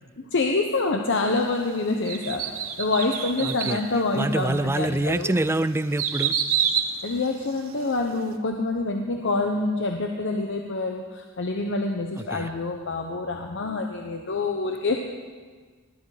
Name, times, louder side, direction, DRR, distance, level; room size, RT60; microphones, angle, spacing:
voice 1, 0.3-2.4 2.8-5.3 7.0-15.0, left 3 dB, 60° left, 3 dB, 1.0 m, -26 dB
sound 1, 2.1-3.8 4.4-4.5 5.1-7.9 8.3-8.4, right 8 dB, 75° right, 1.1 m, -28 dB
voice 2, 3.4-3.8 4.1-6.3 12.2-12.5, right 2 dB, 10° right, 14 dB, 0.4 m, -26 dB
19.5 x 11.0 x 5.0 m, 1.5 s
head